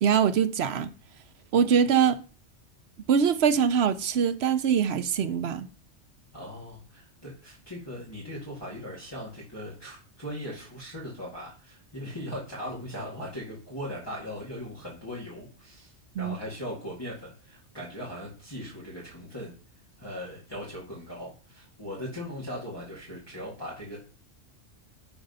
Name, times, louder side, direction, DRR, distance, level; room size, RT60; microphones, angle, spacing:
voice 1, 0.0-0.9 1.5-2.2 3.1-5.7 16.2-16.4, right 7 dB, 65° right, 0.8 m, -23 dB
voice 2, 6.3-19.5 20.0-24.0, equal, 20° left, 2.2 m, -39 dB
10.5 x 3.9 x 5.4 m
omnidirectional pair, 1.2 m